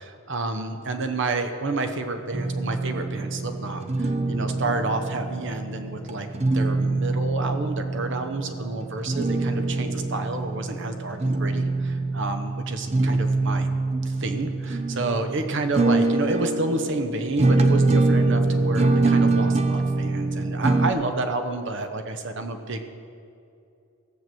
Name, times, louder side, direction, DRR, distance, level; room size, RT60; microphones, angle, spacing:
voice 1, 0.0-13.7 14.0-22.9, right 2 dB, 65° right, 6 dB, 1.0 m, -30 dB
sound 1, 2.3-20.9, right 3 dB, 35° right, 0.7 m, -24 dB
16.0 x 6.1 x 7.7 m, 2.6 s
head